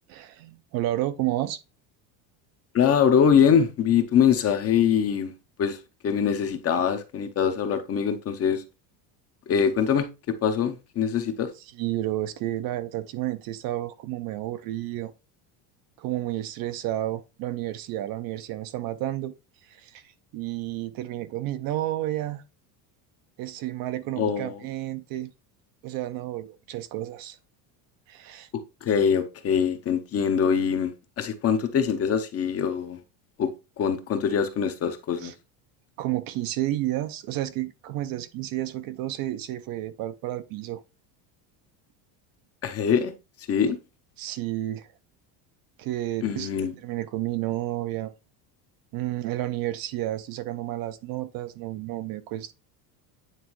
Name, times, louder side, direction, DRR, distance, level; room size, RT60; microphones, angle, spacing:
voice 1, 0.1-1.6 11.6-15.1 16.0-19.3 19.6-22.4 23.4-25.3 25.8-27.4 28.1-28.5 35.2-35.3 36.0-40.8 44.2-44.9 45.8-48.1 48.9-52.5, right 14 dB, 50° right, 0.6 m, -31 dB
voice 2, 2.7-5.3 5.6-5.8 6.0-8.6 9.5-11.5 24.2-24.6 28.8-30.9 31.2-33.0 33.4-33.5 33.8-35.3 42.6-43.1 43.5-43.8 46.2-46.7, left 7 dB, 30° left, 0.7 m, -23 dB
9.1 x 3.4 x 3.1 m
cardioid pair, 135°, 47 cm